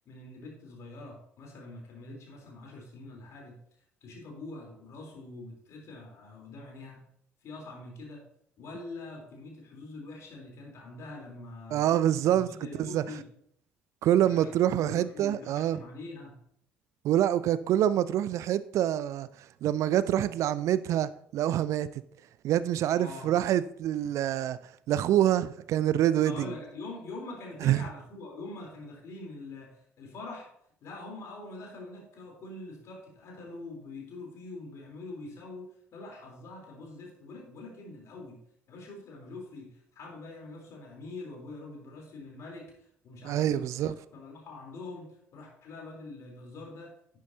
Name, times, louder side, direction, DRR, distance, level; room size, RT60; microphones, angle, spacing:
voice 1, 0.1-3.6 4.0-7.0 7.4-8.3 8.6-11.8 12.2-13.2 14.2-16.3 22.9-23.4 26.3-30.5 30.8-38.4 38.7-43.9 44.1-47.2, left 2 dB, 55° left, 3.6 m, -44 dB
voice 2, 11.7-12.5 12.8-13.0 14.0-15.8 17.0-19.3 19.6-21.9 22.4-24.6 24.9-26.5 27.6-27.8 43.2-43.9, right 11 dB, 55° right, 0.4 m, -26 dB
10.5 x 9.4 x 2.8 m
figure-of-eight pair, 50°, 6 cm